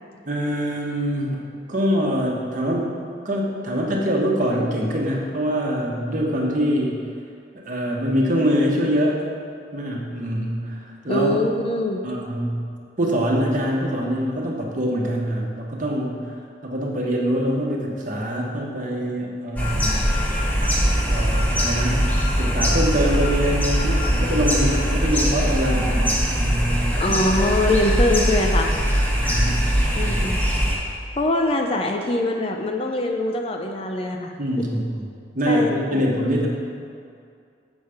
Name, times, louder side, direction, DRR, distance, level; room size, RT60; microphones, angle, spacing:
voice 1, 0.3-2.9 3.2-7.1 7.6-9.3 9.7-11.4 12.0-12.7 13.0-16.3 16.6-20.1 20.7-20.8 21.1-22.1 22.4-27.2 29.1-29.6 30.0-30.2 34.4-35.1 35.3-36.5, equal, 45° right, -2 dB, 1.1 m, -24 dB
voice 2, 11.1-12.0 27.0-28.7 30.0-30.4 31.2-34.3 35.5-36.0, left 1 dB, 30° left, 3 dB, 0.5 m, -23 dB
sound 1, 19.6-30.8, equal, 10° left, 1.2 m, -21 dB
7.2 x 5.7 x 5.0 m, 2.3 s
head